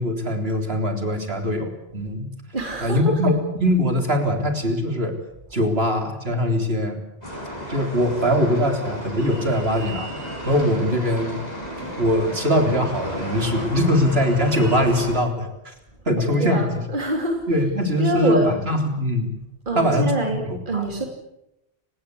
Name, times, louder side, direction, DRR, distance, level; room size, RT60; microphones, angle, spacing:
voice 1, 0.0-2.3 2.8-5.1 5.5-7.0 7.7-10.1 10.5-11.3 11.8-15.7 16.1-16.6 17.5-19.3 19.7-20.1 20.4-21.1, equal, 65° right, 4 dB, 4.1 m, -22 dB
voice 2, 2.5-3.2 10.9-11.1 16.4-17.4 18.0-18.5 19.7-21.0, right 2 dB, 45° right, 2 dB, 3.2 m, -25 dB
sound 1, 7.2-15.2, equal, 35° left, 7.6 m, -33 dB
30.0 x 18.0 x 8.5 m, 0.87 s
omnidirectional pair, 1.1 m